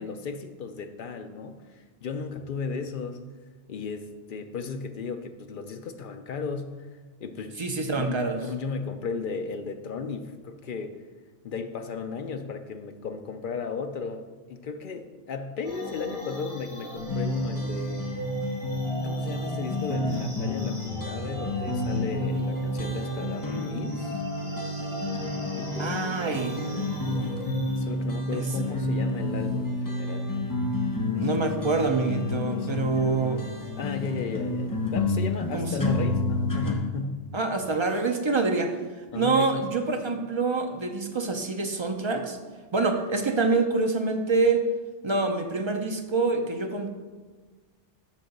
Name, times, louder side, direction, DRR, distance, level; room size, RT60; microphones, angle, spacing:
voice 1, 0.0-3.2 3.7-6.9 7.2-7.5 7.9-11.0 11.4-18.1 19.0-24.1 25.5-25.9 26.3-27.4 27.8-30.3 31.1-31.5 32.5-33.4 33.8-37.2 39.1-39.6, left 5 dB, 60° left, 7 dB, 0.6 m, -35 dB
voice 2, 7.6-8.4 25.8-26.7 28.3-28.9 31.2-33.4 35.5-35.9 37.3-38.8 39.1-42.4 42.7-44.6 45.0-46.9, right 3 dB, 40° right, 4 dB, 0.4 m, -26 dB
sound 1, 15.6-27.8, right 1 dB, 5° right, 1.9 m, -38 dB
sound 2, 17.1-36.8, left 2 dB, 20° left, 0.7 m, -30 dB
7.4 x 3.8 x 6.5 m, 1.4 s
omnidirectional pair, 1.2 m